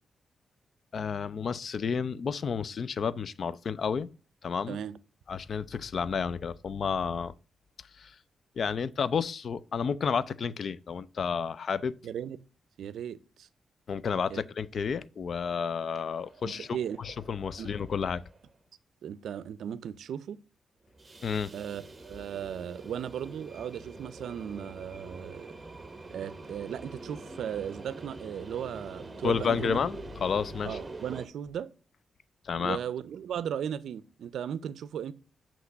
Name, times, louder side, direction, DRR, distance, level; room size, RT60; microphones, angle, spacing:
voice 1, 0.9-4.1 4.4-4.8 5.3-7.3 8.0-8.2 8.6-12.0 13.9-16.7 17.0-18.2 21.2-21.5 29.2-30.8 32.4-32.8, left 6 dB, 60° left, 0.4 m, -31 dB
voice 2, 4.7-5.0 12.0-12.4 12.8-13.5 14.3-14.4 16.4-17.0 17.6-17.7 19.0-20.4 21.5-25.6 26.1-29.8 30.6-31.7 32.6-35.1, right 9 dB, 85° right, 0.4 m, -36 dB
sound 1, 15.4-18.5 20.9-31.3, right 2 dB, 25° right, 1.0 m, -46 dB
8.1 x 3.0 x 5.1 m
cardioid pair, 85°, 0 cm